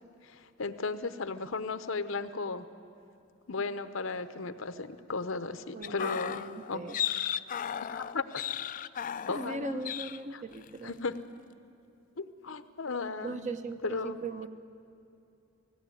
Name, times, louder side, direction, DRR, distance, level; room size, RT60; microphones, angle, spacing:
voice 1, 0.2-2.6 3.5-6.4 6.7-6.9 7.8-8.4 9.3-9.9 10.3-10.4 10.8-11.1 12.2-13.5 13.8-14.2, left 4 dB, 70° left, 11 dB, 0.8 m, -35 dB
voice 2, 5.7-7.0 9.3-11.0 13.2-14.5, right 3 dB, 35° right, 8 dB, 0.9 m, -39 dB
sound 1, 5.8-9.6 9.8-10.2 10.5-10.8, left 9 dB, 40° left, 0.4 m, -35 dB
19.0 x 16.5 x 9.1 m, 2.7 s
head